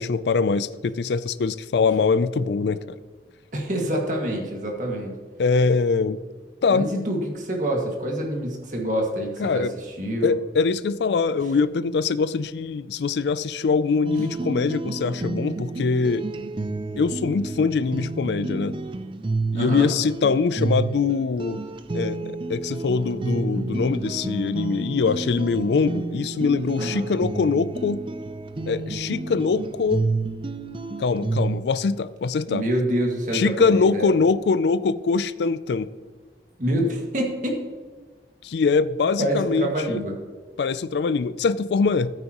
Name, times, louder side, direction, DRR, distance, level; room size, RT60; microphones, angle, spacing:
voice 1, 0.0-3.0 5.4-6.2 6.6-6.9 9.4-9.7 10.2-16.2 17.0-18.7 19.5-21.6 21.9-28.0 28.7-30.0 31.0-32.6 33.3-35.9 38.4-40.0 40.6-42.1, left 4 dB, 75° left, 16 dB, 0.4 m, -23 dB
voice 2, 3.5-5.1 6.7-9.6 10.0-10.4 19.5-19.9 26.8-27.0 32.5-34.1 36.6-37.6 39.2-40.2, right 1 dB, 45° right, 0 dB, 1.9 m, -26 dB
sound 1, 14.0-31.6, right 3 dB, 30° right, 0.4 m, -30 dB
13.5 x 9.2 x 3.0 m, 1.4 s
head